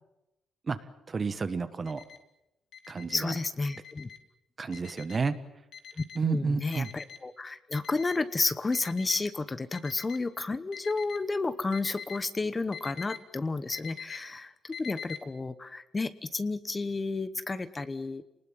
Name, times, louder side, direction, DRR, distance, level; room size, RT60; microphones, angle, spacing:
voice 1, 1.1-2.0 2.9-3.3 4.6-5.4 6.1-6.9, right 4 dB, 30° right, 12 dB, 1.4 m, -30 dB
Alarm, 1.8-2.2 2.7-3.2 3.7-4.2 4.7-5.2 5.7-6.2 6.7-7.2 7.7-8.2 8.7-9.2 9.7-10.2 10.7-11.2 11.7-12.2 12.7-13.2 13.7-14.2 14.7-15.2, left 8 dB, 70° left, 2.3 m, -43 dB
voice 2, 3.1-4.1 6.0-18.2, left 3 dB, 25° left, 13 dB, 1.0 m, -31 dB
28.0 x 20.0 x 7.5 m, 0.90 s
cardioid pair, 115°, 0 cm